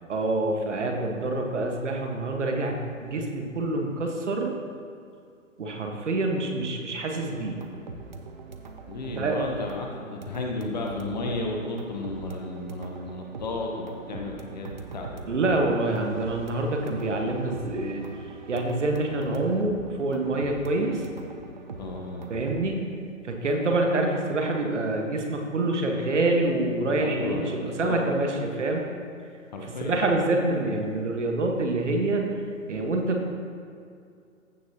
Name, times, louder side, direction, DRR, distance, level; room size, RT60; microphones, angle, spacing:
voice 1, 0.1-4.5 5.6-7.6 9.1-9.4 15.3-18.0 18.5-21.0 22.3-22.9 23.2-28.8 29.6-32.3 32.7-33.3, right 2 dB, 60° right, 2 dB, 1.5 m, -26 dB
sound 1, 7.3-22.7, right 4 dB, 35° right, 0.5 m, -42 dB
voice 2, 8.9-15.3 21.8-22.3 27.0-28.0 29.5-30.0, left 2 dB, 30° left, 1 dB, 0.9 m, -33 dB
15.0 x 6.2 x 2.9 m, 2.4 s
figure-of-eight pair, 150°, 41 cm